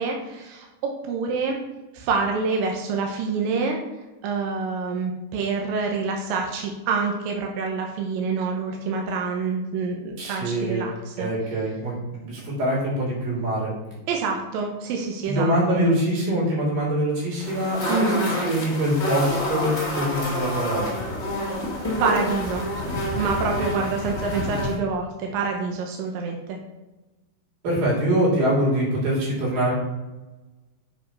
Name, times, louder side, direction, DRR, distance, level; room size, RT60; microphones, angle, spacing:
voice 1, 0.0-1.6 1.9-3.8 4.2-11.3 14.1-15.8 17.9-18.2 22.0-22.7 23.2-26.6, right 4 dB, 75° right, 1 dB, 2.2 m, -27 dB
voice 2, 10.2-10.8 11.2-13.7 15.3-20.9 27.6-29.7, right 1 dB, 55° right, -5 dB, 4.6 m, -24 dB
sound 1, 17.4-24.8, left 1 dB, 75° left, 0.6 m, -28 dB
7.7 x 5.7 x 5.4 m, 1.1 s
omnidirectional pair, 5.0 m